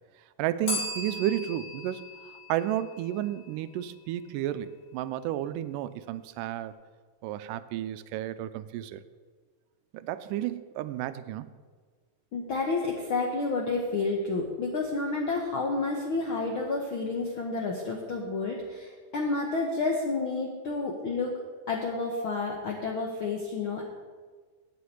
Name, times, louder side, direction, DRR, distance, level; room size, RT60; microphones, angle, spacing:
voice 1, 0.4-2.1 2.5-6.7 7.2-9.0 9.9-11.5, right 12 dB, 85° right, 13 dB, 2.1 m, -32 dB
Bell, 0.7-3.5, left 1 dB, 55° left, 3.3 m, -37 dB
voice 2, 12.3-21.3 21.7-23.9, left 3 dB, 70° left, 0 dB, 1.2 m, -30 dB
9.5 x 6.1 x 8.4 m, 1.5 s
omnidirectional pair, 3.8 m